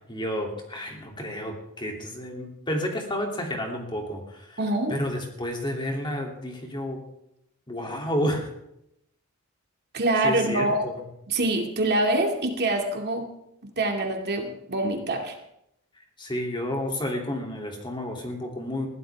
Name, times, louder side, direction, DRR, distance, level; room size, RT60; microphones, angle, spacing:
voice 1, 0.1-4.6 4.9-7.0 7.7-8.5 10.2-11.0 16.2-18.9, left 1 dB, 20° left, 1 dB, 2.9 m, -31 dB
voice 2, 4.6-5.0 9.9-10.8 11.3-13.3 13.8-15.4, right 2 dB, 45° right, 2 dB, 2.3 m, -25 dB
21.5 x 15.5 x 3.5 m, 0.80 s
head